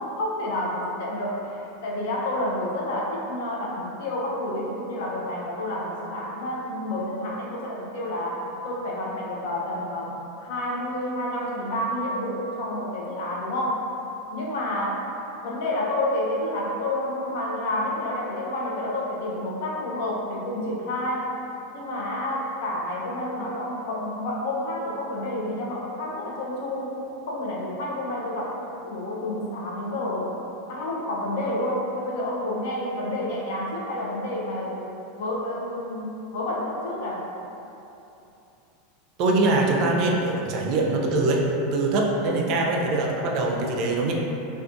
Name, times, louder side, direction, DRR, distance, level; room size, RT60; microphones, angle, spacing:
voice 1, 0.0-13.9 14.3-15.1 15.4-21.3 21.7-30.4 30.7-37.3, left 1 dB, 65° left, -3 dB, 0.5 m, -29 dB
voice 2, 39.2-41.4 41.7-44.1, right 2 dB, 50° right, 0 dB, 0.3 m, -23 dB
2.4 x 2.3 x 2.5 m, 2.9 s
hypercardioid pair, 90°, 0 cm